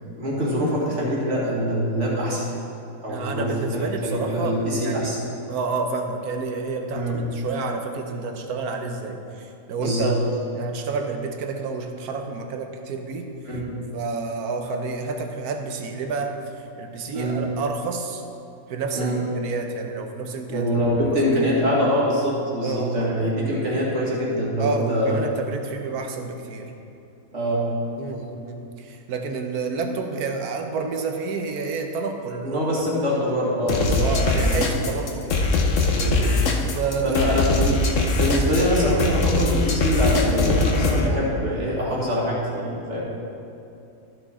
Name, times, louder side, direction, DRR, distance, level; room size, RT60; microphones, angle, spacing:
voice 1, 0.0-2.5 3.0-5.2 6.9-7.2 9.8-10.2 13.5-13.7 17.1-17.5 18.9-19.2 20.5-25.3 27.3-27.7 32.4-34.7 35.9-36.4 37.0-37.9 38.1-43.0, equal, 55° right, -5 dB, 2.1 m, -24 dB
voice 2, 3.1-5.1 5.5-10.2 10.5-13.3 13.9-18.2 18.7-20.7 21.1-21.2 22.6-23.1 24.6-26.7 28.0-32.7 32.9-33.0 34.0-35.5 36.6-37.5, right 4 dB, 85° right, 5 dB, 1.3 m, -29 dB
sound 1, 33.7-41.1, left 2 dB, 60° left, 1.2 m, -21 dB
13.0 x 5.8 x 4.1 m, 2.7 s
omnidirectional pair, 1.5 m